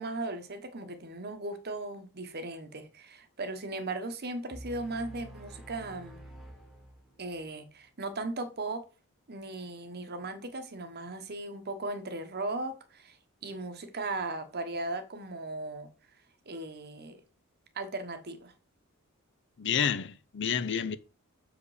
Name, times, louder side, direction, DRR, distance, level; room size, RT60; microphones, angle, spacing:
voice 1, 0.0-6.2 7.2-8.8 9.3-13.2 13.4-15.9 16.5-17.2 17.7-18.5, right 2 dB, 45° right, 1.1 m, -37 dB
sound 1, 4.5-7.5, equal, ahead, 1.3 m, -48 dB
voice 2, 19.6-21.0, left 7 dB, 55° left, 0.6 m, -29 dB
6.7 x 5.1 x 4.9 m
head